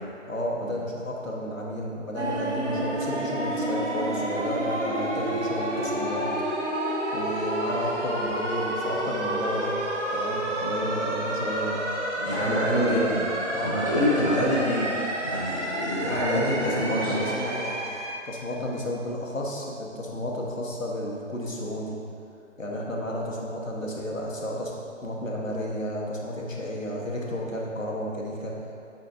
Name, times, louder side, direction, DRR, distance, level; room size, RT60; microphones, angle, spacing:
voice 1, 0.3-6.5 7.1-9.7 10.1-11.8 12.2-13.2 13.5-13.8 14.2-14.5 16.1-17.8 18.2-22.0 22.6-24.7 25.0-28.5, equal, 80° left, -3 dB, 1.2 m, -32 dB
sound 1, 2.2-18.1, right 1 dB, 65° right, 1.0 m, -29 dB
voice 2, 12.1-13.2 13.6-14.9 15.2-17.2 22.7-22.8, equal, 15° right, -11 dB, 0.9 m, -26 dB
8.4 x 5.0 x 2.5 m, 2.5 s
figure-of-eight pair, 150°, 39 cm